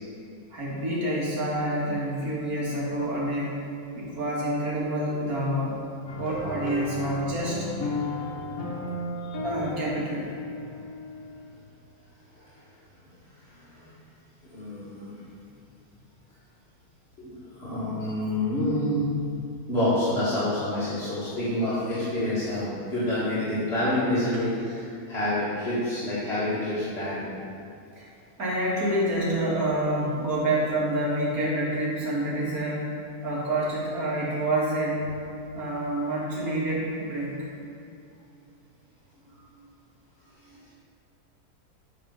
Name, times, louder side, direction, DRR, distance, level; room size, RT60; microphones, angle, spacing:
voice 1, 0.5-3.6 3.9-5.8 6.2-7.7 9.4-10.3 28.0-28.1 28.4-32.9 33.2-35.1 35.5-37.4, right 1 dB, 70° right, -6 dB, 2.5 m, -27 dB
sound 1, 6.1-11.7, left 2 dB, 65° left, 1.5 m, -34 dB
voice 2, 14.5-15.1 17.2-19.0 19.7-27.2, left 1 dB, 40° left, -12 dB, 2.2 m, -27 dB
9.5 x 4.2 x 6.3 m, 2.6 s
omnidirectional pair, 1.6 m